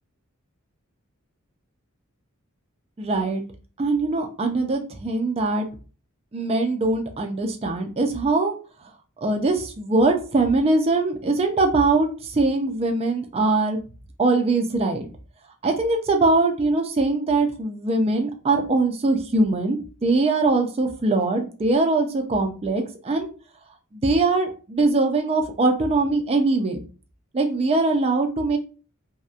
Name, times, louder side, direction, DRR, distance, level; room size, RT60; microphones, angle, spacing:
voice 1, 3.0-3.4 3.8-5.7 6.3-8.5 9.2-13.8 14.2-15.0 15.6-23.3 23.9-26.8 27.3-28.6, right 3 dB, 30° right, 4 dB, 0.4 m, -22 dB
2.8 x 2.1 x 2.4 m, 0.36 s
head